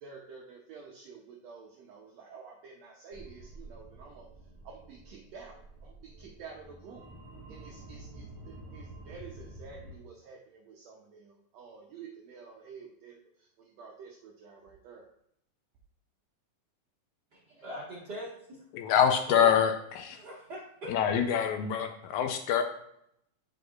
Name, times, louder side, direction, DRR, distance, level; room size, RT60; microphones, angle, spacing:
voice 1, 0.0-4.3 4.6-7.0 7.5-13.2 13.6-15.1, right 5 dB, 85° right, 0 dB, 1.5 m, -50 dB
sound 1, 3.1-10.0, right 2 dB, 20° right, 0.5 m, -49 dB
voice 2, 17.5-18.6 19.3-19.5 20.1-21.2, equal, 65° right, -6 dB, 1.0 m, -41 dB
voice 3, 18.7-20.2 20.9-22.6, left 8 dB, 85° left, 6 dB, 1.7 m, -25 dB
9.8 x 5.2 x 2.3 m, 0.76 s
omnidirectional pair, 3.9 m